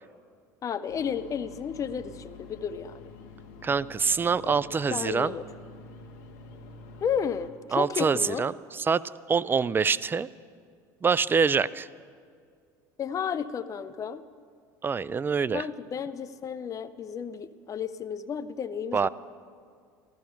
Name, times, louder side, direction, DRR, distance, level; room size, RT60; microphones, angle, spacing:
voice 1, 0.6-3.1 4.5-5.4 7.0-8.5 13.0-14.2 15.5-19.1, left 7 dB, 35° left, 13 dB, 0.6 m, -32 dB
sound 1, 0.9-7.5, left 3 dB, 75° left, 1.4 m, -48 dB
voice 2, 3.6-5.3 7.7-9.0 9.3-10.3 11.0-11.9 14.8-15.6 18.9-19.1, right 5 dB, 25° right, 19 dB, 0.4 m, -25 dB
14.5 x 13.5 x 5.9 m, 2.1 s
hypercardioid pair, 80°, 9 cm